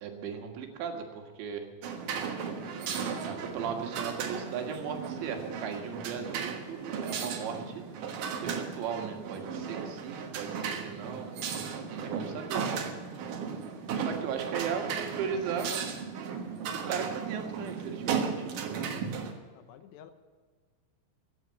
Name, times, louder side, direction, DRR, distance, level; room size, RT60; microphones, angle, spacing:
voice 1, 0.0-1.7 3.3-7.8 8.4-11.4 11.9-13.0 13.9-15.7 16.7-18.6, right 7 dB, 85° right, 3 dB, 4.0 m, -37 dB
sound 1, 1.8-19.3, right 6 dB, 60° right, 2.5 m, -35 dB
voice 2, 18.9-20.1, left 9 dB, 80° left, 9 dB, 3.0 m, -52 dB
15.5 x 9.2 x 8.6 m, 1.5 s
omnidirectional pair, 5.0 m